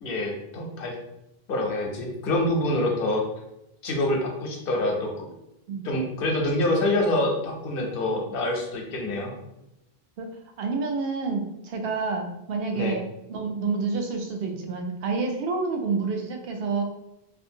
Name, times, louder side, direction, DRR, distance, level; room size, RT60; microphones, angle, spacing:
voice 1, 0.0-0.9 1.5-3.3 3.8-5.3 5.8-9.3 12.7-13.0, left 1 dB, 70° left, 1 dB, 0.8 m, -26 dB
voice 2, 10.6-13.0 13.3-16.8, right 4 dB, 70° right, 2 dB, 0.8 m, -28 dB
2.5 x 2.5 x 2.7 m, 0.86 s
omnidirectional pair, 1.0 m